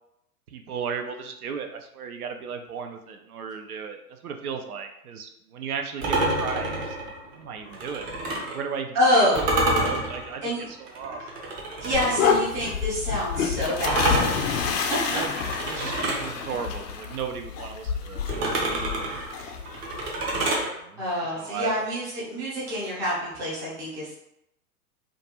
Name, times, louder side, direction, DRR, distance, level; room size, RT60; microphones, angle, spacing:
voice 1, 0.5-8.2 8.4-9.3 9.7-11.2 15.1-15.3 15.7-18.3 18.9-19.2 20.6-21.0 21.3-22.1, right 6 dB, 75° right, 5 dB, 0.5 m, -35 dB
sound 1, 6.0-8.6 9.3-12.3 13.8-16.3 18.3-20.7, right 2 dB, 45° right, 0.8 m, -28 dB
voice 2, 8.9-9.4 10.4-10.7 11.8-14.1 14.5-15.2 19.0-19.4 21.0-24.1, left 1 dB, 5° right, -8 dB, 0.4 m, -27 dB
sound 2, 11.9-20.2, left 6 dB, 60° left, 0.5 m, -28 dB
2.5 x 2.3 x 2.7 m, 0.80 s
figure-of-eight pair, 105°, 45 cm